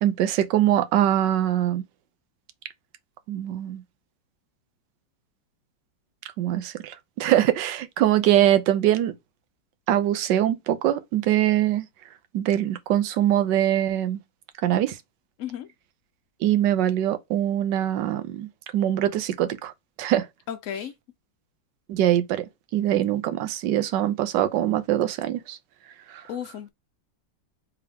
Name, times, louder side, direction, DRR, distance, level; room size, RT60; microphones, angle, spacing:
voice 1, 0.0-1.8 3.3-3.8 6.4-9.1 9.9-11.9 12.3-14.2 14.6-15.0 16.4-19.7 20.0-20.3 21.9-22.5 22.7-25.6 26.1-26.2, right 12 dB, 80° right, 1.3 m, -23 dB
voice 2, 15.4-15.7 20.5-20.9 26.3-26.7, left 9 dB, 85° left, 0.6 m, -33 dB
3.4 x 3.4 x 3.4 m
omnidirectional pair, 2.0 m